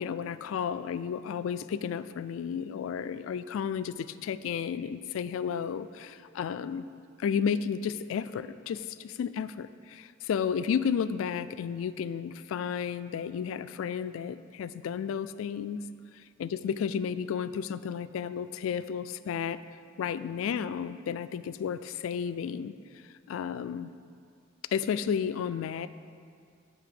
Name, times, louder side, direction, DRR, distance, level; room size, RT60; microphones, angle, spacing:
voice 1, 0.0-6.8 7.2-15.8 16.4-19.6 20.0-22.7 23.3-23.9 24.7-25.9, left 7 dB, 80° left, 14 dB, 0.3 m, -32 dB
9.7 x 3.5 x 6.9 m, 2.2 s
head